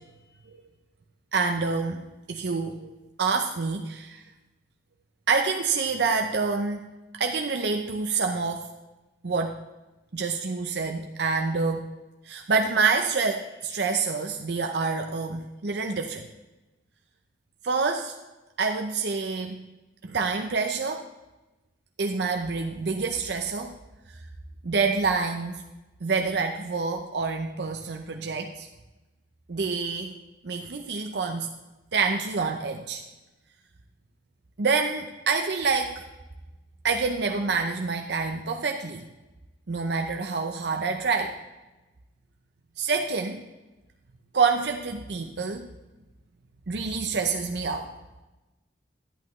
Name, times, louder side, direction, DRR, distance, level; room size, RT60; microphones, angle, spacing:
voice 1, 1.3-2.0 2.3-2.8 3.2-4.2 5.3-6.8 7.1-8.7 9.2-9.6 10.1-11.9 12.2-16.3 17.6-18.1 18.6-19.6 20.0-21.1 22.0-23.7 24.6-25.6 26.0-28.7 29.5-30.1 30.4-31.5 31.9-33.0 34.6-35.9 36.8-39.0 39.7-41.3 42.8-43.4 44.3-45.7 46.7-47.9, right 4 dB, 65° right, 3 dB, 0.7 m, -27 dB
11.0 x 10.5 x 3.1 m, 1.1 s
head